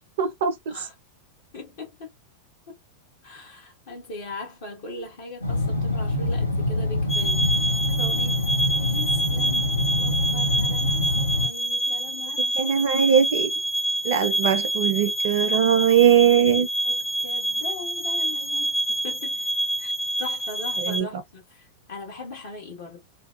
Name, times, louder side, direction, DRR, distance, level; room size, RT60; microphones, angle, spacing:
voice 1, 0.2-0.7 12.6-13.5 14.0-16.7 20.8-21.1, right 8 dB, 55° right, 0.4 m, -20 dB
voice 2, 1.5-2.1 2.7-2.8 3.2-8.4 8.7-9.7 10.0-13.0 16.5-19.5 19.8-19.9 20.2-23.0, left 2 dB, 55° left, 1.2 m, -40 dB
sound 1, 5.4-11.5, left 2 dB, 85° left, 0.7 m, -25 dB
sound 2, 7.1-21.0, right 1 dB, 25° left, 0.5 m, -27 dB
2.7 x 2.3 x 2.3 m
figure-of-eight pair, 90°, 0 cm